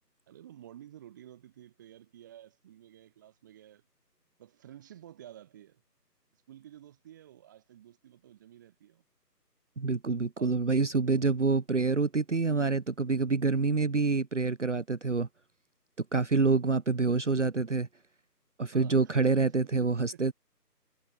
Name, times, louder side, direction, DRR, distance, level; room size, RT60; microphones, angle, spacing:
voice 1, 0.3-3.8 4.4-5.8 6.5-9.0 10.4-10.5 11.1-11.3 17.1-17.4 18.7-19.4 19.8-20.2, right 11 dB, 10° right, 2.5 m, -52 dB
voice 2, 9.8-15.3 16.0-17.9 18.6-20.3, right 4 dB, 45° right, 1.2 m, -27 dB
figure-of-eight pair, 160°, 49 cm